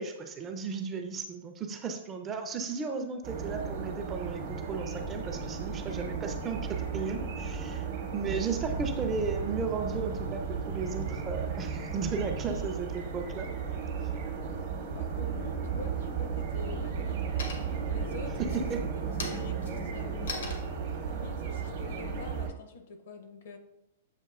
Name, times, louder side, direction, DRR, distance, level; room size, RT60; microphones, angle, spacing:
voice 1, 0.0-7.8 8.1-13.5 18.4-18.8, right 5 dB, 15° right, 5 dB, 0.4 m, -35 dB
sound 1, 3.2-22.5, right 6 dB, 50° right, 0.7 m, -35 dB
sound 2, 8.6-17.1, right 6 dB, 85° right, 0.6 m, -43 dB
voice 2, 14.9-20.7 21.0-23.6, left 4 dB, 65° left, 7 dB, 0.6 m, -46 dB
sound 3, 17.4-18.0 18.4-22.8, left 3 dB, 90° left, 1.0 m, -42 dB
7.4 x 2.7 x 2.4 m, 0.87 s
hypercardioid pair, 160°, 0 cm